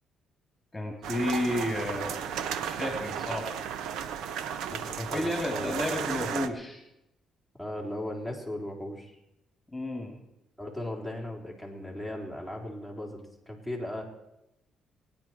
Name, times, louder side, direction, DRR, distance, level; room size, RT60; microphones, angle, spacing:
voice 1, 0.7-2.2 2.6-3.5 5.0-6.8 9.7-10.1, left 1 dB, 15° left, 1 dB, 3.2 m, -31 dB
sound 1, 1.0-6.5, right 8 dB, 85° right, 0.8 m, -34 dB
voice 2, 4.7-5.7 7.6-9.2 10.6-13.2 13.5-14.0, left 1 dB, 10° right, 0 dB, 3.9 m, -37 dB
24.5 x 9.9 x 4.6 m, 0.88 s
cardioid pair, 90°, 0 cm